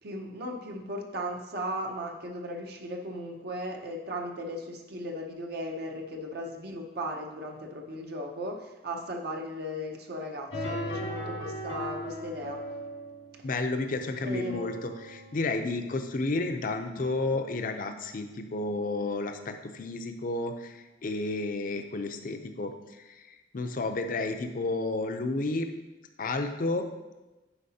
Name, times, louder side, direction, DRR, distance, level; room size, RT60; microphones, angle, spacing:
voice 1, 0.0-12.6 14.2-14.7, equal, 60° right, 2 dB, 0.7 m, -36 dB
sound 1, 10.5-18.7, equal, 90° left, 1.8 m, -40 dB
voice 2, 13.4-25.7 26.2-26.8, left 2 dB, 50° left, 7 dB, 0.5 m, -31 dB
9.9 x 4.8 x 2.8 m, 1.1 s
head